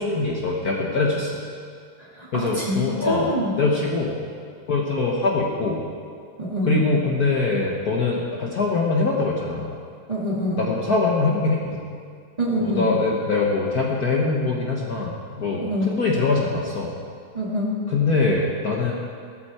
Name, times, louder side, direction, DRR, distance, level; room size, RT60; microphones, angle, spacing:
voice 1, 0.0-1.4 2.3-3.3 3.6-4.2 4.7-5.8 6.6-9.8 10.6-11.8 12.6-16.9 17.9-18.9, left 3 dB, 50° left, -2 dB, 1.6 m, -23 dB
voice 2, 2.0-3.6 6.4-6.8 10.1-10.6 12.4-12.9 15.5-16.0 17.3-17.8, equal, 20° right, -5 dB, 2.3 m, -25 dB
16.5 x 13.5 x 4.4 m, 2.2 s
omnidirectional pair, 2.4 m